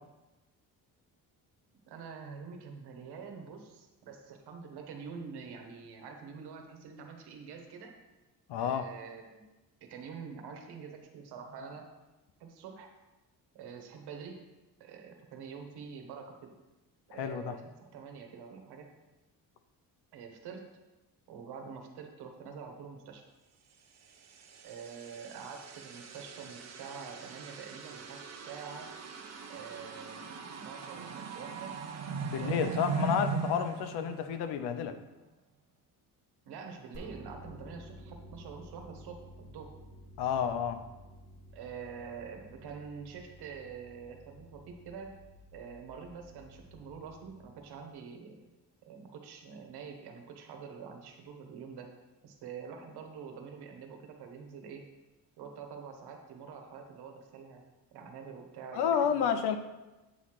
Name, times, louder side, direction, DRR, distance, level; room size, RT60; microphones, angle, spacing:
voice 1, 1.9-7.9 8.5-9.5 9.8-11.9 12.4-12.9 13.5-14.4 14.8-16.5 17.1-18.9 20.1-20.6 21.3-23.2 24.6-28.9 29.5-31.7 32.3-33.1 36.4-39.8 41.5-45.2 45.5-48.4 48.8-51.9 52.2-54.9 55.4-57.6 57.9-59.3, right 6 dB, 80° right, 4 dB, 1.2 m, -46 dB
voice 2, 8.5-8.9 17.2-17.6 32.2-35.0 40.2-40.8 58.7-59.6, left 8 dB, 90° left, 10 dB, 0.7 m, -30 dB
sound 1, 24.1-34.8, right 5 dB, 40° right, 0.8 m, -40 dB
sound 2, 36.9-47.9, equal, 40° left, 1.7 m, -53 dB
8.3 x 3.2 x 5.8 m, 1.1 s
cardioid pair, 100°, 39 cm